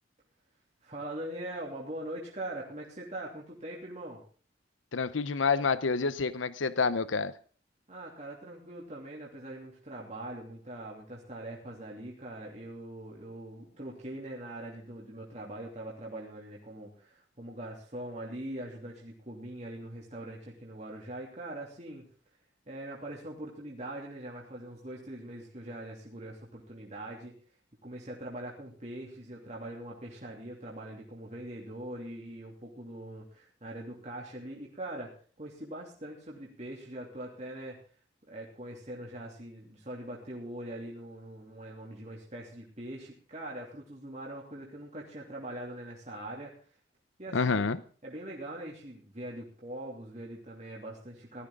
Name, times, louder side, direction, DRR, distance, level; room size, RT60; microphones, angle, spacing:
voice 1, 0.8-4.2 7.9-22.1 22.7-27.3 27.8-35.1 35.4-37.8 38.3-46.5 47.2-47.7 48.0-51.5, right 1 dB, 35° right, -3 dB, 3.0 m, -42 dB
voice 2, 4.9-7.3 47.3-47.8, left 4 dB, 90° left, 15 dB, 0.8 m, -28 dB
17.0 x 13.5 x 3.7 m, 0.41 s
head